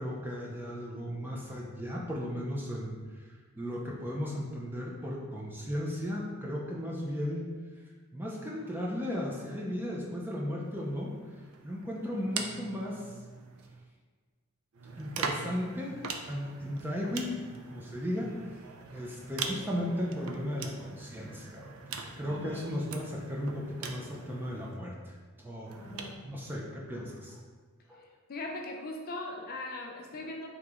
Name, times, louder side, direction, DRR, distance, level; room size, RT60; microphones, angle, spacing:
voice 1, 0.0-3.3 3.6-7.5 8.1-11.1 11.6-13.0 15.0-18.3 18.9-25.7 26.2-27.4 27.9-28.0, equal, 10° right, -3 dB, 0.5 m, -36 dB
sound 1, 10.6-13.9 14.7-24.8 25.7-26.2, right 5 dB, 65° right, 0.4 m, -42 dB
voice 2, 22.3-22.7 25.8-26.1 28.3-30.5, left 2 dB, 40° left, 1 dB, 0.5 m, -39 dB
3.8 x 3.1 x 3.6 m, 1.5 s
head